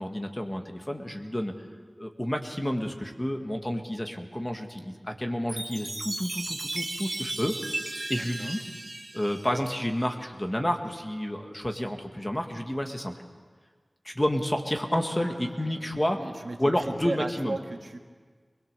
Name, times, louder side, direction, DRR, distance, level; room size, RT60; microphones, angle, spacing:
voice 1, 0.0-1.5 2.0-7.6 8.1-8.6 9.1-13.1 14.1-16.2 16.6-17.6, equal, 15° left, 4 dB, 1.8 m, -30 dB
Chime, 5.5-10.1, right 2 dB, 40° right, 1.5 m, -36 dB
voice 2, 8.2-8.6 15.1-18.0, right 2 dB, 65° right, 3 dB, 1.6 m, -37 dB
22.5 x 21.0 x 6.8 m, 1.5 s
wide cardioid pair, 70°, 0 cm